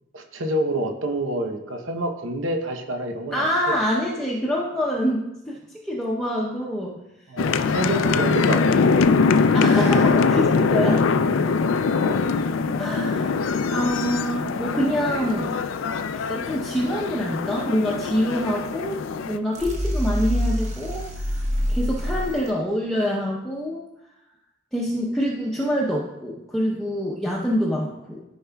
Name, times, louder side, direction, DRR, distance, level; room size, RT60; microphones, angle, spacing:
voice 1, 0.1-3.8 7.3-9.6 11.9-12.2, right 1 dB, 85° right, 4 dB, 0.9 m, -28 dB
voice 2, 3.3-6.9 8.0-8.1 9.5-11.0 12.8-15.5 16.0-19.0 19.3-23.8 24.7-28.2, equal, 5° left, -5 dB, 0.7 m, -26 dB
sound 1, 7.4-19.4, left 4 dB, 85° left, 0.4 m, -22 dB
sound 2, 19.5-22.5, equal, 35° right, 1.2 m, -26 dB
13.0 x 5.5 x 2.3 m, 0.92 s
head